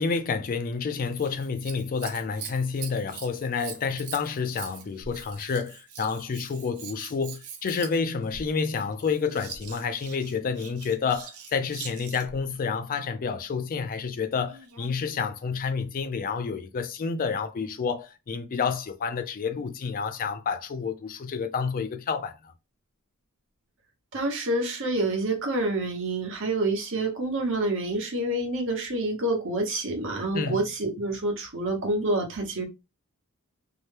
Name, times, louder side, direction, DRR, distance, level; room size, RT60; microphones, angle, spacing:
voice 1, 0.0-22.5 30.3-30.6, left 5 dB, 40° left, 0.3 m, -29 dB
Scissors, 1.1-12.4 14.4-15.0 15.7-15.8, right 6 dB, 75° right, 0.6 m, -43 dB
voice 2, 24.1-32.7, right 2 dB, 60° right, 1.0 m, -27 dB
2.8 x 2.1 x 3.2 m
head